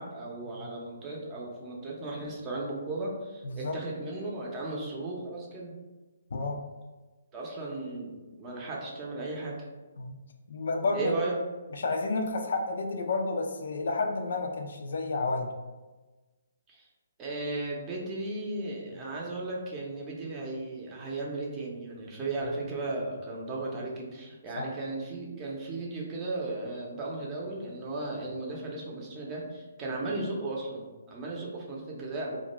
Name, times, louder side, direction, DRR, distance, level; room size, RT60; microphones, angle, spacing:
voice 1, 0.0-5.7 7.3-9.7 10.9-11.4 16.7-16.9 17.2-32.4, right 2 dB, 20° right, -3 dB, 0.6 m, -36 dB
voice 2, 3.4-3.8 6.3-6.6 10.0-10.2 10.5-11.1 11.7-15.5 24.6-24.7, left 3 dB, 65° left, 3 dB, 0.4 m, -30 dB
2.4 x 2.2 x 3.0 m, 1.2 s
figure-of-eight pair, 135°, 0 cm